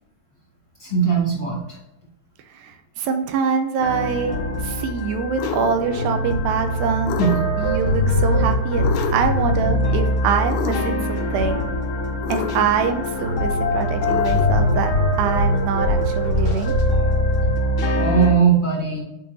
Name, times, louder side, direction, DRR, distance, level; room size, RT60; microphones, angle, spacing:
voice 1, 0.8-1.8 7.2-7.4 17.9-19.0, right 6 dB, 20° left, -4 dB, 0.8 m, -19 dB
voice 2, 2.5-4.4 4.6-7.2 7.6-11.6 12.3-14.9 15.2-16.7, right 6 dB, 80° right, 6 dB, 2.3 m, -24 dB
sound 1, 3.8-18.3, left 1 dB, 60° left, 1.4 m, -22 dB
sound 2, 5.4-5.8 7.0-7.7 8.8-9.4 10.5-11.1 12.2-12.9 14.0-14.7, left 8 dB, 90° left, 2.6 m, -29 dB
9.3 x 4.0 x 2.6 m, 0.90 s
omnidirectional pair, 4.5 m